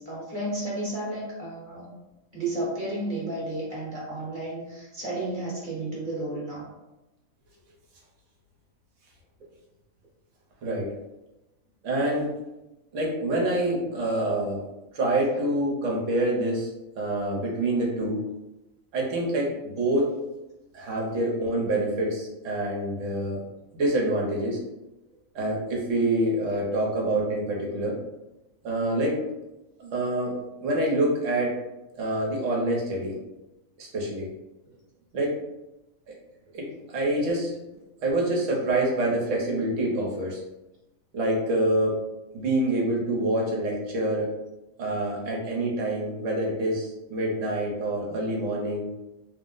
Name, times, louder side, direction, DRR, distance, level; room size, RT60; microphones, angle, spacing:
voice 1, 0.0-1.8 2.3-6.6, right 1 dB, 40° right, -6 dB, 1.0 m, -32 dB
voice 2, 10.6-10.9 11.8-12.3 12.9-14.6 14.9-18.2 18.9-20.1 20.7-23.4 23.7-24.6 25.3-28.0 28.6-29.2 29.8-31.6 31.9-33.2 33.8-34.3 35.1-35.3 36.1-36.2 36.5-37.5 38.0-40.4 41.1-42.0 42.3-44.3 44.8-48.9, right 1 dB, 70° right, -2 dB, 1.1 m, -26 dB
2.9 x 2.0 x 3.8 m, 0.98 s
omnidirectional pair, 1.4 m